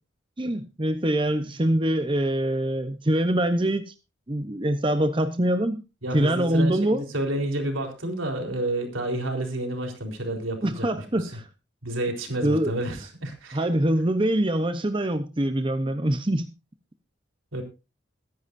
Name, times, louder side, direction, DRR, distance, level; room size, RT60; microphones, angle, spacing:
voice 1, 0.4-3.9 4.3-5.8 6.1-7.0 10.6-11.4 12.4-12.7 13.5-16.5, right 1 dB, 25° right, 9 dB, 0.8 m, -24 dB
voice 2, 6.0-11.4 11.8-13.6 17.5-17.6, right 1 dB, 90° right, 3 dB, 4.1 m, -30 dB
22.5 x 10.5 x 2.6 m, 0.29 s
head